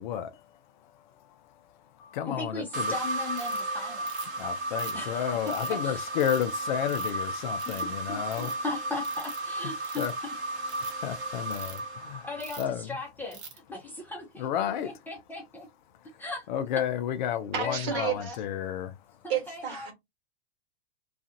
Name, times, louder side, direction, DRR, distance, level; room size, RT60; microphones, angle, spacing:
voice 1, 0.0-2.9 4.3-8.5 10.0-10.1 10.8-12.3 12.6-13.0 14.4-15.0 15.9-19.3, left 10 dB, 45° left, 0.4 m, -32 dB
voice 2, 2.4-4.1 4.9-5.4 5.8-6.0 7.7-10.1 11.6-11.7 12.2-12.6 12.9-13.4 13.7-14.5 14.8-15.7 16.2-16.5 17.6-18.4 19.2-19.9, left 3 dB, 5° left, 0.6 m, -38 dB
sound 1, 2.7-12.7, right 1 dB, 90° right, 0.9 m, -34 dB
Ratchet pawl, 3.4-3.6 4.1-4.4 4.8-5.7 6.2-6.4 6.9-7.2 7.6-7.9 8.2-8.5 9.0-9.4 9.8-10.2 10.6-10.9 11.5-11.8 12.4-12.7 13.3-13.6, right 6 dB, 30° right, 0.9 m, -44 dB
voice 3, 17.5-18.3 19.3-19.9, right 9 dB, 55° right, 1.3 m, -31 dB
2.4 x 2.4 x 2.6 m
hypercardioid pair, 110°, 33 cm